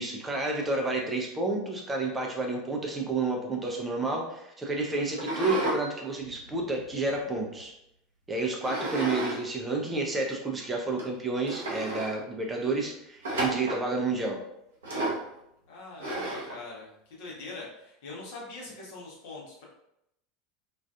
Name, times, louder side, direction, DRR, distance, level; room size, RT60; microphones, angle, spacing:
voice 1, 0.0-7.7 8.3-14.4, right 3 dB, 15° right, 0 dB, 0.5 m, -30 dB
sound 1, 5.1-5.8 6.2-7.6 8.6-9.4 9.7-9.8 10.5-10.6 11.0-11.1 11.4-12.1 13.2-13.8 14.8-15.3 16.0-16.6, right 1 dB, 65° right, 0.6 m, -32 dB
voice 2, 15.7-19.6, left 3 dB, 55° left, -3 dB, 0.8 m, -43 dB
2.4 x 2.4 x 2.3 m, 0.80 s
figure-of-eight pair, 75°, 0 cm